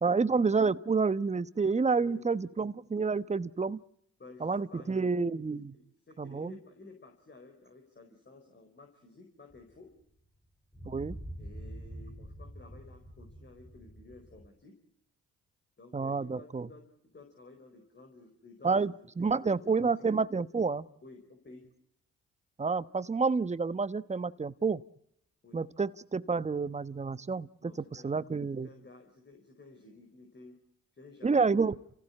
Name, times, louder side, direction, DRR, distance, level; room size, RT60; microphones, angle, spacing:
voice 1, 0.0-3.8 4.4-5.7 6.2-6.6 10.8-11.2 15.9-16.7 18.6-20.9 22.6-24.8 25.5-28.7 31.2-31.8, right 4 dB, 20° right, 16 dB, 1.0 m, -29 dB
voice 2, 1.9-2.5 4.2-5.1 5.7-9.9 11.4-14.7 15.8-16.8 17.1-18.9 19.2-20.1 21.0-21.7 25.4-25.6 27.6-28.2 28.6-30.6 30.9-31.6, left 3 dB, 35° left, 3 dB, 4.8 m, -53 dB
sound 1, 9.5-9.6 10.7-14.5, equal, 10° left, 3.5 m, -45 dB
29.0 x 16.0 x 10.0 m, 0.76 s
hypercardioid pair, 50°, 31 cm